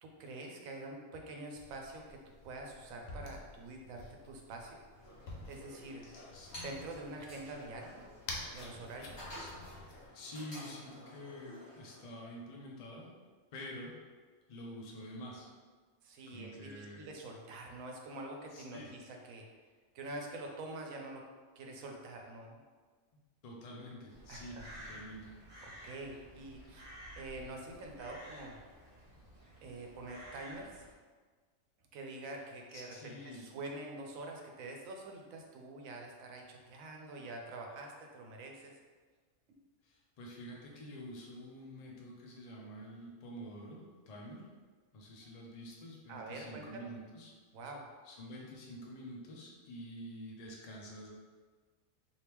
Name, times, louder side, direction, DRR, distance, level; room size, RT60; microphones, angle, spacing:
voice 1, 0.0-2.2 2.4-4.8 5.4-6.0 6.6-8.0 8.5-9.3 16.0-19.5 19.9-21.2 21.6-22.6 24.3-25.0 25.6-26.9 27.2-28.6 29.6-30.8 31.9-38.8 46.1-46.9 47.5-47.9, right 2 dB, 80° right, 2 dB, 1.0 m, -46 dB
plastic soap bottle, 1.5-10.1, left 2 dB, 90° left, 1.0 m, -50 dB
sound 1, 4.9-12.0, equal, 20° left, 0.9 m, -52 dB
voice 2, 10.1-13.1 13.5-13.9 14.5-15.5 16.3-17.1 18.5-18.9 23.4-25.3 32.7-33.4 39.8-44.4 44.9-47.3 48.0-51.1, equal, 55° left, -2 dB, 0.4 m, -48 dB
Crow, 24.1-30.9, equal, 40° right, 0.8 m, -52 dB
3.4 x 2.7 x 2.9 m, 1.5 s
omnidirectional pair, 1.4 m